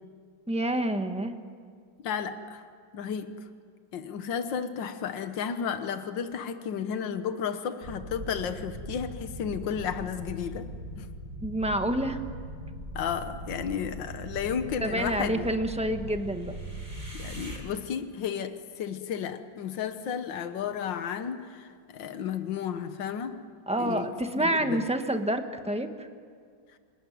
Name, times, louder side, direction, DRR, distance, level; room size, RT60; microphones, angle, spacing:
voice 1, 0.5-1.4 11.4-12.2 14.8-16.5 23.7-26.1, right 1 dB, 5° right, 6 dB, 1.2 m, -28 dB
voice 2, 2.0-2.7 2.9-3.3 3.9-10.7 11.0-11.1 13.0-15.5 17.1-23.3 23.8-24.1 24.4-24.8, left 7 dB, 80° left, 9 dB, 1.8 m, -33 dB
sound 1, 7.8-17.6, right 1 dB, 45° right, 6.3 m, -40 dB
28.0 x 18.0 x 9.4 m, 2.1 s
omnidirectional pair, 2.0 m